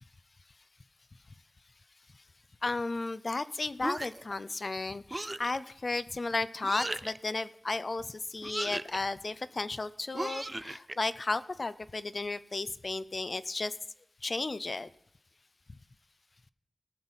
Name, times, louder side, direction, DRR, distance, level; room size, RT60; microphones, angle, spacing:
voice 1, 2.6-13.7 14.2-14.9, left 3 dB, 50° left, 15 dB, 0.5 m, -34 dB
sound 1, 3.8-4.3 5.1-5.6 6.6-7.2 8.4-9.0 10.1-11.0, right 1 dB, 25° right, 0.4 m, -36 dB
17.5 x 6.2 x 5.6 m, 0.79 s
wide cardioid pair, 60°, 0 cm